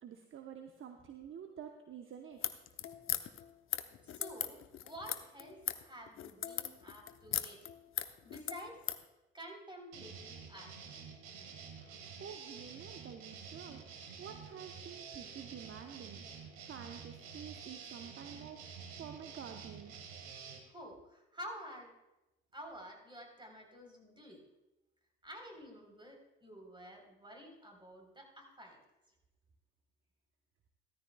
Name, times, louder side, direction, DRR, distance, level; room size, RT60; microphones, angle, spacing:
voice 1, 0.0-2.4 11.8-13.8 14.2-16.2 16.6-18.6 19.0-20.1, right 8 dB, 40° right, 5 dB, 1.0 m, -49 dB
sound 1, 2.3-9.0, left 10 dB, 45° left, 0.8 m, -39 dB
voice 2, 4.0-7.6 8.2-8.8 9.3-10.7 20.7-21.9 22.5-24.4 25.2-28.8, equal, 15° right, 2 dB, 3.8 m, -50 dB
sound 2, 9.9-20.6, right 6 dB, 70° right, 1.9 m, -49 dB
15.5 x 13.5 x 2.3 m, 0.97 s
hypercardioid pair, 55°, 30 cm